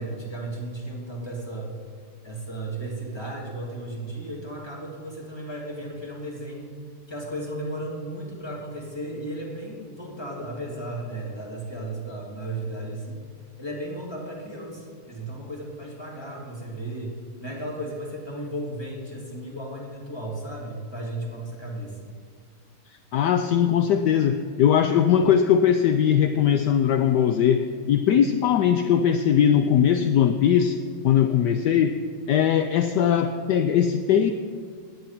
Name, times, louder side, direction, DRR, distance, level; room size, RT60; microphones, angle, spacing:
voice 1, 0.0-1.7 2.2-6.7 7.1-13.2 13.6-22.1, right 1 dB, 10° left, -2 dB, 2.7 m, -35 dB
voice 2, 23.1-30.8 31.0-32.0 32.3-34.3, left 9 dB, 70° left, 8 dB, 1.0 m, -20 dB
16.0 x 10.5 x 5.9 m, 2.1 s
omnidirectional pair, 2.4 m